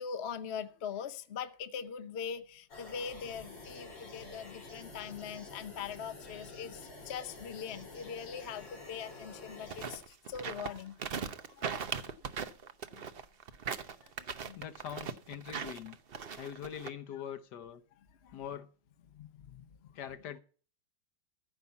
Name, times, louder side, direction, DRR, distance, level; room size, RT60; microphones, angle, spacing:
voice 1, 0.0-11.0 11.5-11.9 12.9-13.0 14.0-14.6 18.2-18.3 19.1-19.6, left 7 dB, 45° left, 1.0 m, -42 dB
sound 1, 2.7-10.0, left 2 dB, 85° left, 3.4 m, -49 dB
sound 2, 9.6-16.9, right 6 dB, 45° right, 0.7 m, -39 dB
voice 2, 14.5-16.0 16.4-17.8 18.3-18.7 19.9-20.4, left 9 dB, 65° left, 1.4 m, -43 dB
14.5 x 5.8 x 8.1 m
omnidirectional pair, 2.0 m